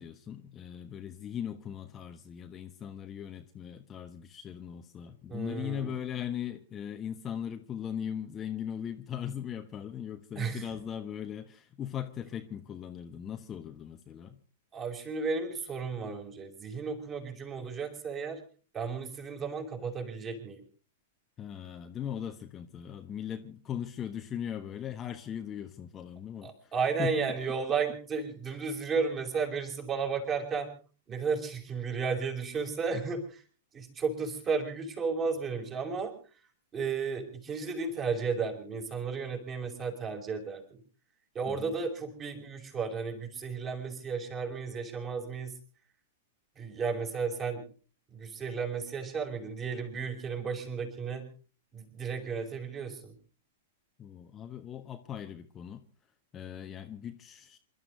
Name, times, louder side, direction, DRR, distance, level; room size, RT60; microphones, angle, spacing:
voice 1, 0.0-14.4 21.4-26.7 27.0-27.2 28.5-28.6 41.5-41.7 54.0-55.8 56.3-57.6, left 9 dB, 25° left, 1.3 m, -39 dB
voice 2, 5.3-6.0 10.4-10.6 14.7-18.4 18.7-20.6 26.4-30.7 31.1-33.4 33.7-36.1 36.7-40.8 41.3-45.6 46.6-47.7 48.1-51.3 51.7-53.1, right 5 dB, 25° right, 5.4 m, -33 dB
27.5 x 12.5 x 4.0 m
figure-of-eight pair, 100°, 0 cm